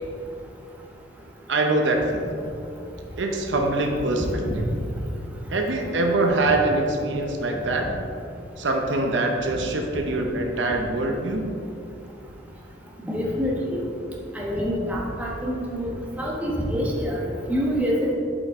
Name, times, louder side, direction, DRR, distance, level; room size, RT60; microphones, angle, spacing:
voice 1, 1.5-2.4 3.2-4.6 5.5-7.8 8.6-11.6, right 2 dB, 75° right, 2 dB, 0.8 m, -24 dB
voice 2, 13.1-13.6 14.3-15.9 16.2-17.2 17.5-18.1, equal, 10° right, -4 dB, 1.1 m, -26 dB
8.0 x 5.5 x 3.6 m, 2.7 s
head